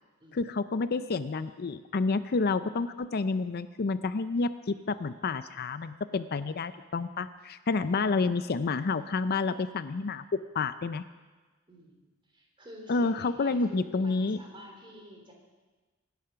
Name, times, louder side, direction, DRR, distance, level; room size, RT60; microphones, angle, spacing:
voice 1, 0.3-10.2 10.5-11.0 12.9-14.4, left 4 dB, 50° left, 12 dB, 0.5 m, -29 dB
voice 2, 11.7-12.0 12.3-15.3, equal, 25° right, 1 dB, 3.5 m, -49 dB
23.5 x 10.5 x 5.8 m, 1.3 s
head